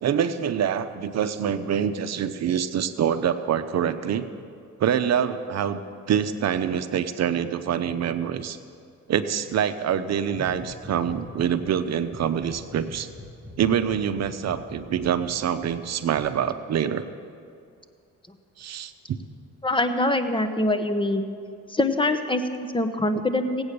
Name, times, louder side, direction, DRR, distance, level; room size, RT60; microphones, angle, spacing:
voice 1, 0.0-4.3 4.8-5.8 6.1-8.6 9.1-13.1 13.6-17.1 18.6-19.2 22.1-22.2, right 8 dB, 60° right, 10 dB, 0.7 m, -25 dB
sound 1, 10.3-11.7 12.1-15.8 16.1-16.3, left 1 dB, 5° right, 1.2 m, -42 dB
voice 2, 19.6-21.2 21.7-23.6, left 2 dB, 15° left, 8 dB, 0.9 m, -24 dB
17.0 x 8.8 x 6.8 m, 2.3 s
cardioid pair, 90°, 30 cm